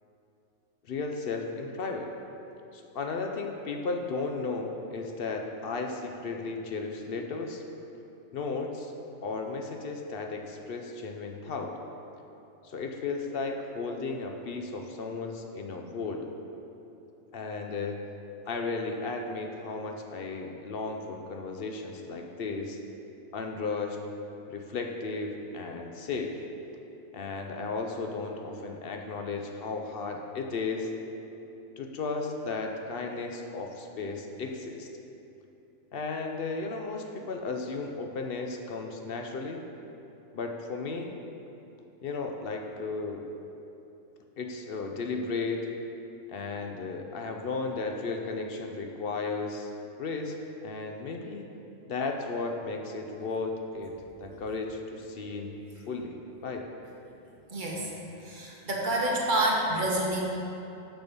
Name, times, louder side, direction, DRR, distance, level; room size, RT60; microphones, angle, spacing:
voice 1, 0.8-2.1 2.7-7.6 8.3-8.9 9.2-11.8 12.6-16.3 17.3-18.0 18.5-22.8 23.3-24.0 24.5-26.4 27.1-30.9 31.8-34.9 35.9-39.6 40.3-41.1 42.0-43.2 44.4-45.7 46.3-49.7 50.0-50.4 50.6-51.5 51.9-53.9 54.2-55.5 55.9-56.7, left 4 dB, 55° left, 3 dB, 0.7 m, -34 dB
voice 2, 57.5-57.9 58.2-60.2, right 1 dB, 40° right, -3 dB, 1.2 m, -28 dB
6.7 x 6.1 x 5.2 m, 2.9 s
omnidirectional pair, 1.4 m